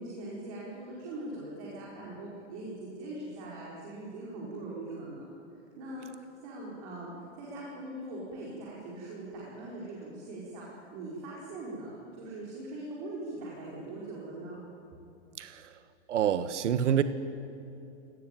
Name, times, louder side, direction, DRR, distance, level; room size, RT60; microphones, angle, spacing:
voice 1, 0.0-5.3 5.8-6.1 6.4-14.7, right 2 dB, 30° right, -5 dB, 5.1 m, -41 dB
voice 2, 15.4-15.7 16.1-17.0, right 9 dB, 75° right, 12 dB, 1.4 m, -27 dB
29.5 x 18.0 x 9.2 m, 2.8 s
supercardioid pair, 180°, 36 cm